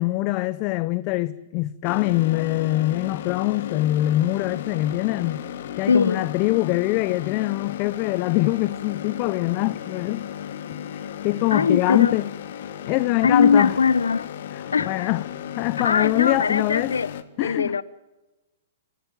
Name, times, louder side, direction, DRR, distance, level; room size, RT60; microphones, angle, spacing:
voice 1, 0.0-5.4 5.8-10.3 10.7-12.3 12.9-13.8 14.5-15.3 15.6-16.9 17.4-17.8, left 18 dB, 40° left, 0.7 m, -24 dB
sound 1, 1.8-17.2, left 9 dB, 60° left, 1.7 m, -35 dB
voice 2, 5.9-6.3 11.5-12.2 13.2-14.3 14.7-15.1 15.8-17.1 17.4-17.8, left 5 dB, 85° left, 0.7 m, -21 dB
25.0 x 16.0 x 9.1 m
hypercardioid pair, 120°, 0 cm